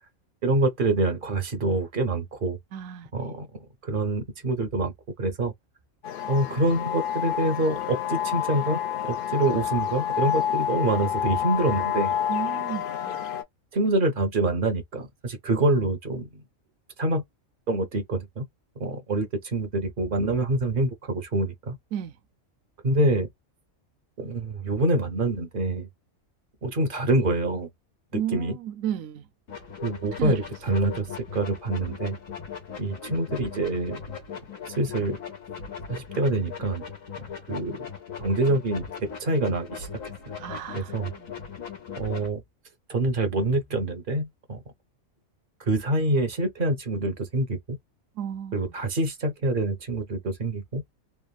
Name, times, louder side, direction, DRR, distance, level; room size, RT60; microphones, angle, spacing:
voice 1, 0.4-2.6 3.1-3.5 3.8-4.9 5.2-5.5 6.3-12.1 13.7-16.3 17.0-17.2 17.7-18.5 18.8-21.8 22.8-23.3 24.2-25.9 26.6-27.7 28.1-28.6 29.8-31.1 31.3-32.2 32.8-34.0 34.7-35.2 35.9-36.8 37.5-37.9 38.2-39.9 40.7-41.1 42.0-42.4 42.9-44.6 45.6-47.8 48.5-50.8, right 2 dB, 45° right, 0.8 m, -26 dB
voice 2, 2.7-3.1 12.3-13.2 21.9-22.2 28.1-29.3 30.2-30.4 30.7-31.0 40.4-41.3 48.2-48.7, right 10 dB, 80° right, 1.0 m, -33 dB
sound 1, 6.0-13.4, left 10 dB, 60° left, 0.6 m, -28 dB
sound 2, 29.5-42.3, left 6 dB, 80° left, 1.4 m, -39 dB
3.3 x 2.0 x 2.2 m
omnidirectional pair, 1.4 m